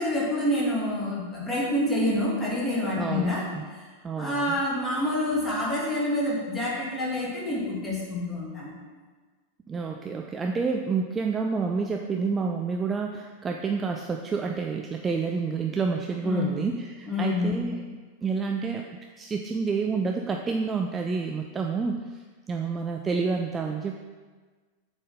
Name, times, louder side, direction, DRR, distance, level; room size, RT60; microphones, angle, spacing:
voice 1, 0.0-3.4 4.2-8.7 16.2-16.6 17.1-17.6, left 1 dB, 10° left, -6 dB, 2.2 m, -27 dB
voice 2, 3.0-3.6 4.0-4.6 9.7-18.8 19.2-22.2 22.5-24.0, right 4 dB, 20° right, 3 dB, 0.4 m, -29 dB
7.5 x 4.2 x 4.9 m, 1.4 s
figure-of-eight pair, 90°, 0 cm